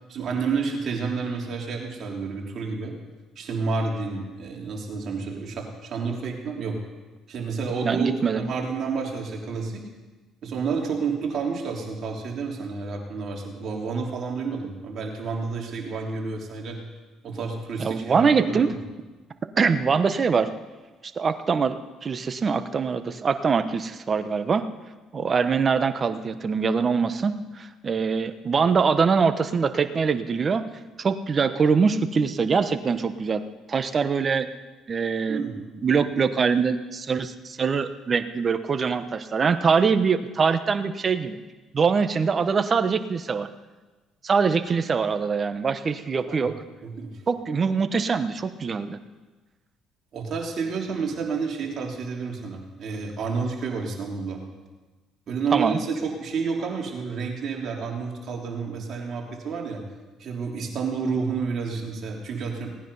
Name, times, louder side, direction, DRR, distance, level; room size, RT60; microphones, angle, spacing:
voice 1, 0.1-2.9 3.3-6.8 7.3-9.8 10.4-16.8 17.2-18.8 35.3-35.7 46.3-46.5 46.8-47.2 50.1-54.4 55.3-59.8 60.2-62.7, right 5 dB, 55° right, 0 dB, 3.4 m, -30 dB
voice 2, 7.8-8.4 17.8-18.7 19.6-20.5 21.2-24.6 25.1-30.6 31.0-33.4 33.7-34.5 34.9-35.4 35.8-41.4 41.7-43.5 44.2-46.5 47.3-49.0 55.5-55.8, right 5 dB, 40° right, 11 dB, 1.0 m, -23 dB
18.0 x 10.0 x 5.6 m, 1.2 s
supercardioid pair, 85°, 0 cm